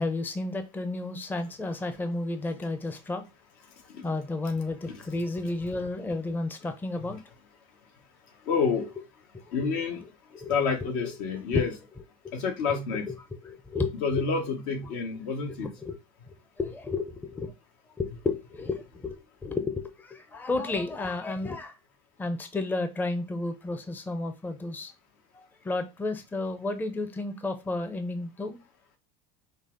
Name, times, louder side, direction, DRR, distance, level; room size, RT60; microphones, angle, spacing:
voice 1, 0.0-3.2 4.0-7.2 9.6-9.7 10.3-10.6 11.0-11.2 11.5-11.7 12.2-12.3 12.9-13.1 13.4-14.2 15.8-15.9 16.6-17.5 18.0-21.7 22.2-24.9 25.4-28.6, left 3 dB, 10° left, 0.5 m, -32 dB
voice 2, 8.5-8.9 9.5-10.0 10.5-11.7 12.3-13.1 14.0-15.7, left 5 dB, 75° left, 1.2 m, -28 dB
5.3 x 2.0 x 3.7 m
supercardioid pair, 115°, 19 cm